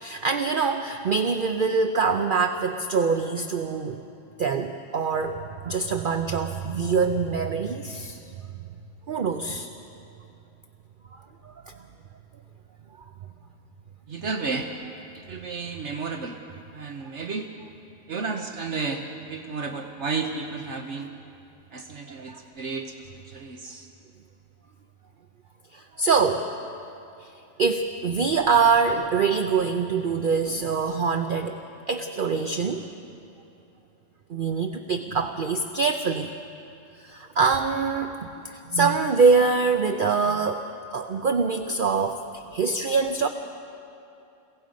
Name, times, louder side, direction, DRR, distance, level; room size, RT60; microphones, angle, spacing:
voice 1, 0.0-4.0 4.4-8.2 9.1-9.7 11.4-11.8 22.3-22.4 25.7-26.5 27.2-27.3 27.6-31.6 31.9-32.8 34.3-36.3 37.0-38.2 38.5-40.6 40.9-43.3, right 5 dB, 50° right, 6 dB, 0.8 m, -24 dB
voice 2, 14.1-14.7 15.1-16.4 16.7-17.5 18.1-19.0 19.3-21.1 21.7-23.9, right 4 dB, 65° right, 4 dB, 1.3 m, -32 dB
29.5 x 17.5 x 5.2 m, 2.8 s
omnidirectional pair, 1.3 m